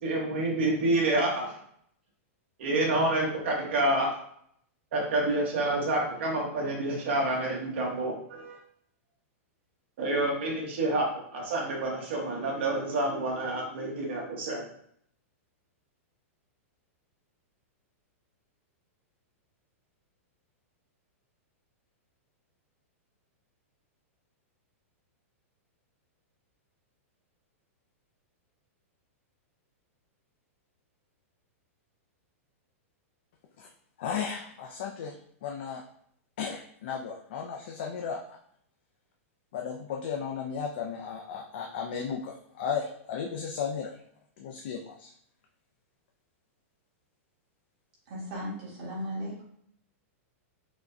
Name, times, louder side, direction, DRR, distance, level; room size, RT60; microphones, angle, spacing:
voice 1, 0.0-1.5 2.6-4.1 4.9-8.6 10.0-14.6, right 2 dB, 50° right, -2 dB, 1.1 m, -28 dB
voice 2, 34.0-35.2 35.4-35.8 36.4-38.4 39.5-43.9 44.4-45.1, left 6 dB, 45° left, 1 dB, 0.3 m, -35 dB
voice 3, 48.1-49.4, equal, 35° right, -5 dB, 1.3 m, -36 dB
4.7 x 2.2 x 2.5 m, 0.68 s
supercardioid pair, 175°, 8 cm